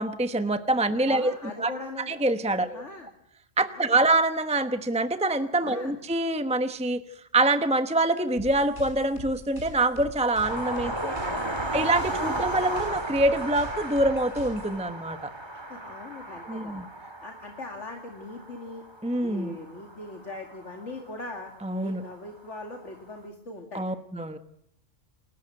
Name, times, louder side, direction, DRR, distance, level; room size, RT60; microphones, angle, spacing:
voice 1, 0.0-1.3 1.6-1.7 2.1-2.8 3.6-7.0 7.3-10.9 11.7-15.3 16.5-16.8 19.0-19.5 21.6-22.0 23.7-24.4, right 2 dB, 5° right, 10 dB, 1.0 m, -25 dB
voice 2, 1.1-2.1 2.6-3.1 3.6-3.9 5.6-6.0 10.8-11.6 12.1-12.4 15.7-16.8 17.2-18.8 19.2-21.5 21.8-23.9, left 2 dB, 70° left, 3 dB, 2.7 m, -40 dB
sound 1, 8.4-14.8, right 1 dB, 40° right, 6.4 m, -43 dB
sound 2, 10.4-21.5 22.5-22.6 22.9-23.0, right 2 dB, 20° right, 2.1 m, -35 dB
28.5 x 13.5 x 7.7 m, 0.72 s
omnidirectional pair, 1.3 m